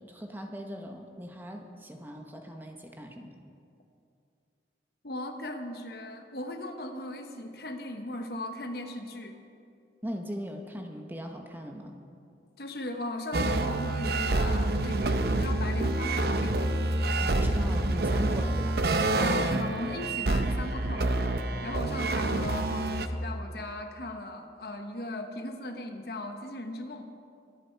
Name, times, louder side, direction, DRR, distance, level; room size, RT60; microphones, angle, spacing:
voice 1, 0.0-3.3 10.0-12.0 17.2-18.8, equal, 10° right, 3 dB, 0.9 m, -39 dB
voice 2, 5.0-9.4 12.6-16.8 19.2-21.3 21.6-27.1, left 1 dB, 60° left, 5 dB, 1.1 m, -38 dB
sound 1, 13.3-23.1, right 2 dB, 60° right, 0.7 m, -27 dB
23.5 x 8.6 x 4.5 m, 2.5 s
head